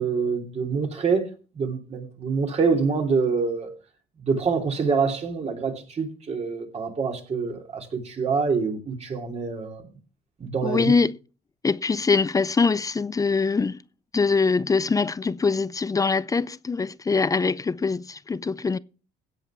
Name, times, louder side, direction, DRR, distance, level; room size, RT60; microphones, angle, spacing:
voice 1, 0.0-3.7 4.2-9.8 10.4-10.9, right 5 dB, 40° right, 3.0 m, -26 dB
voice 2, 10.6-11.2 11.6-13.8 14.1-18.8, left 4 dB, 20° left, 0.5 m, -23 dB
16.5 x 5.6 x 6.9 m
cardioid pair, 110°, 17 cm